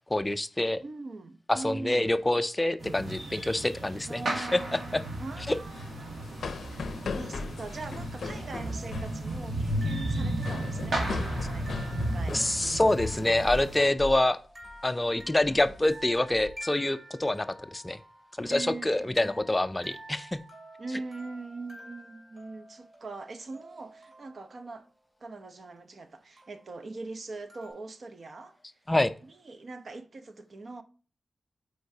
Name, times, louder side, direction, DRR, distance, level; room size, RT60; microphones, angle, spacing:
voice 1, 0.1-0.8 1.5-4.6 4.9-5.0 5.5-5.6 12.3-14.4 14.8-17.5 17.7-18.0 18.4-20.4 28.9-29.1, left 1 dB, 15° left, 0.3 m, -26 dB
voice 2, 0.8-2.2 4.1-12.4 15.1-15.8 18.4-19.3 20.8-24.9 25.2-28.6 29.2-30.8, right 3 dB, 55° right, 0.7 m, -42 dB
sound 1, 2.8-13.8, right 1 dB, 90° right, 2.0 m, -34 dB
sound 2, 5.6-13.7 14.0-14.3 14.6-15.0 15.4-16.5, left 4 dB, 85° left, 0.4 m, -39 dB
sound 3, 8.3-24.7 26.4-26.9 27.5-27.7, right 1 dB, 40° right, 2.8 m, -50 dB
7.9 x 4.6 x 2.7 m
wide cardioid pair, 105°, 0 cm